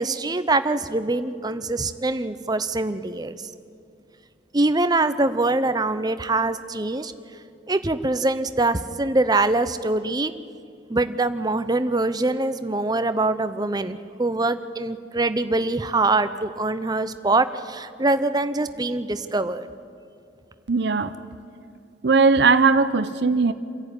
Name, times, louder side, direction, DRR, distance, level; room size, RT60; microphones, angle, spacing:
voice 1, 0.0-3.4 4.5-7.1 7.7-10.3 10.9-19.7, right 2 dB, 20° right, 11 dB, 0.7 m, -23 dB
voice 2, 20.7-21.1 22.0-23.5, right 4 dB, 60° right, 11 dB, 0.7 m, -18 dB
28.0 x 11.0 x 9.7 m, 2.4 s
head